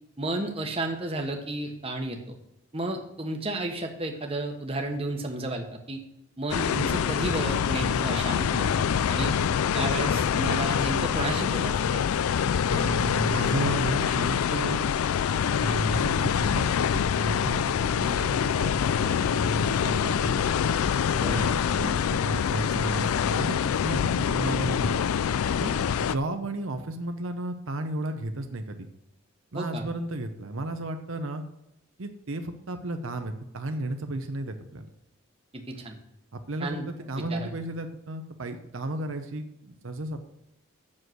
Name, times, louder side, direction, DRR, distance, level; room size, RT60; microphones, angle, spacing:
voice 1, 0.2-2.3 2.7-6.0 6.4-9.3 9.7-12.0 21.1-21.5 29.5-29.8 35.5-36.0 36.6-36.8 37.3-37.5, right 2 dB, 25° right, 3 dB, 1.1 m, -32 dB
sound 1, 6.5-26.2, left 7 dB, 85° left, 0.4 m, -25 dB
voice 2, 12.7-14.8 15.6-20.5 21.2-25.0 25.6-28.9 29.5-31.4 32.0-34.9 36.3-40.3, right 2 dB, 70° right, 6 dB, 0.8 m, -33 dB
7.6 x 6.4 x 7.9 m, 0.83 s
head